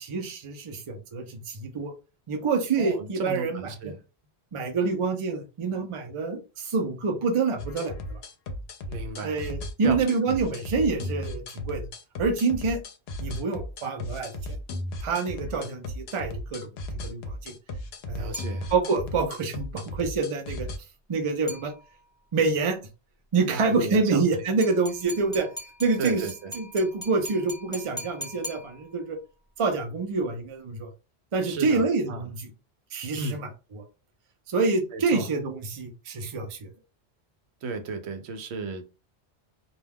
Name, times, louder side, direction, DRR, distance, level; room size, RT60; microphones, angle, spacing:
voice 1, 0.0-1.9 2.3-3.9 4.5-8.2 9.2-11.9 12.2-12.8 13.2-14.3 15.0-16.7 17.0-17.5 18.1-18.4 18.7-20.7 21.1-21.7 22.3-22.8 23.3-25.5 25.8-29.2 29.6-30.9 31.3-32.5 32.9-33.8 34.5-36.7, right 4 dB, 45° right, 0.4 m, -27 dB
voice 2, 2.8-4.0 8.9-9.4 9.8-10.6 18.2-18.7 23.5-24.2 26.0-26.5 31.4-32.2 33.1-33.4 34.9-35.3 37.6-38.8, right 3 dB, 80° right, 0.8 m, -34 dB
sound 1, 7.6-20.8, left 1 dB, 70° left, 0.8 m, -36 dB
sound 2, 18.3-19.2 21.5-22.2 24.6-29.2, equal, 5° left, 0.6 m, -41 dB
2.3 x 2.2 x 3.3 m
omnidirectional pair, 1.1 m